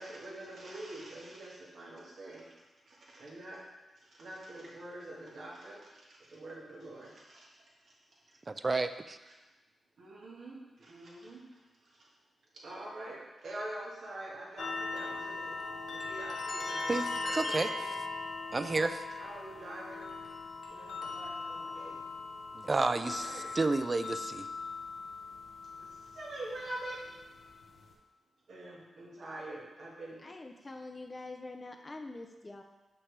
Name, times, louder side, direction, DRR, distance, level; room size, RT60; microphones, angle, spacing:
voice 1, 0.0-3.6 3.9-8.4 9.3-9.4 10.0-12.1 12.5-16.9 17.2-17.9 19.2-20.1 20.7-22.0 22.8-23.5 25.8-27.0 28.5-30.2, right 1 dB, 75° right, -5 dB, 1.9 m, -45 dB
voice 2, 8.5-9.2 16.9-17.0 17.5-17.7 18.5-19.0 22.5-23.3 23.6-24.5, right 3 dB, 40° right, 11 dB, 0.4 m, -30 dB
sound 1, 14.6-27.9, left 3 dB, 80° left, 1.0 m, -40 dB
voice 3, 30.2-32.6, left 2 dB, 35° left, 3 dB, 0.6 m, -45 dB
6.4 x 6.0 x 3.3 m, 1.1 s
cardioid pair, 55°, 0 cm